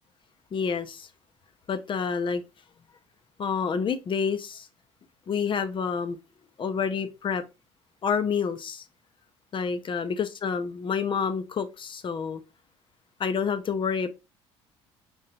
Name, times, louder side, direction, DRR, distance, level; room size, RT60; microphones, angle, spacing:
voice 1, 0.5-1.1 1.7-2.4 3.4-4.7 5.3-6.2 6.6-7.4 8.0-8.8 9.5-12.4 13.2-14.1, left 6 dB, 35° left, 0.6 m, -28 dB
3.7 x 3.1 x 2.8 m
figure-of-eight pair, 55°, 15 cm